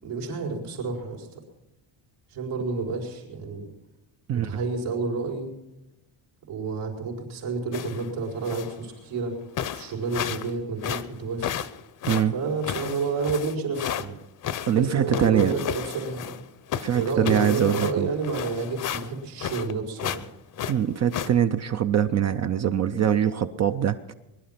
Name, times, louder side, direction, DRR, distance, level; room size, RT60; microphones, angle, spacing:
voice 1, 0.0-1.4 2.3-3.7 4.3-5.5 6.5-9.3 9.7-11.5 12.3-14.2 14.7-16.4 16.9-20.3, right 4 dB, 85° right, 0 dB, 5.2 m, -30 dB
sound 1, 7.7-8.1 8.4-8.8 9.2-9.3 9.6-10.5 10.8-14.0 14.4-16.4 16.7-19.7 20.0-20.2 20.5-21.3, left 9 dB, 40° left, 0.7 m, -32 dB
voice 2, 14.7-15.5 16.8-18.1 20.7-24.0, right 9 dB, 35° right, 10 dB, 0.5 m, -23 dB
22.0 x 11.5 x 5.8 m, 0.97 s
cardioid pair, 175°, 48 cm